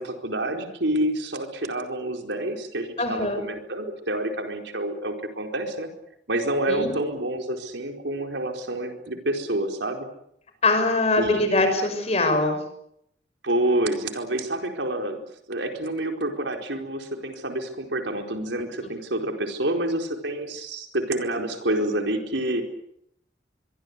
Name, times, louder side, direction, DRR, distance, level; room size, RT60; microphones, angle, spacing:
voice 1, 0.0-5.9 6.3-10.1 11.2-11.4 13.4-15.2 15.5-22.6, right 1 dB, 80° right, 4 dB, 4.5 m, -28 dB
voice 2, 3.0-3.4 6.7-6.9 10.6-12.6, left 2 dB, 35° left, 7 dB, 6.1 m, -22 dB
24.5 x 23.5 x 8.3 m, 0.74 s
head